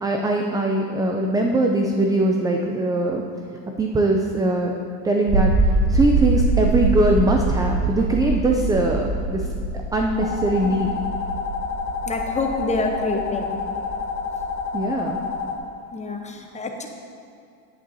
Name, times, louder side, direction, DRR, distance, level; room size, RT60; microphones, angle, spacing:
voice 1, 0.0-3.2 3.8-4.7 5.0-5.5 5.9-10.9 14.7-15.2, right 2 dB, 10° right, 2 dB, 0.3 m, -21 dB
sound 1, 5.3-15.4, right 2 dB, 40° right, 1.5 m, -24 dB
sound 2, 10.2-15.6, left 5 dB, 80° left, 1.3 m, -29 dB
voice 2, 12.1-13.5 15.9-16.9, left 3 dB, 15° left, 3 dB, 0.9 m, -27 dB
9.9 x 8.3 x 2.7 m, 2.4 s
supercardioid pair, 100°, 43 cm